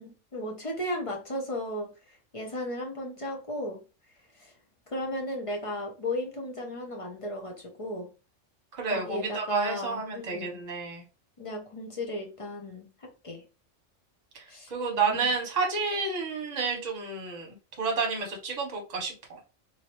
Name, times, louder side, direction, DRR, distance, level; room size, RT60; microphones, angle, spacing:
voice 1, 0.0-3.8 4.4-4.5 4.9-8.1 8.9-10.6 11.4-13.4 14.5-14.7 15.1-15.3, left 1 dB, 35° left, 0.6 m, -35 dB
voice 2, 8.7-11.0 14.3-14.4 14.7-19.4, right 4 dB, 35° right, 1.0 m, -30 dB
3.1 x 2.7 x 3.0 m
omnidirectional pair, 1.3 m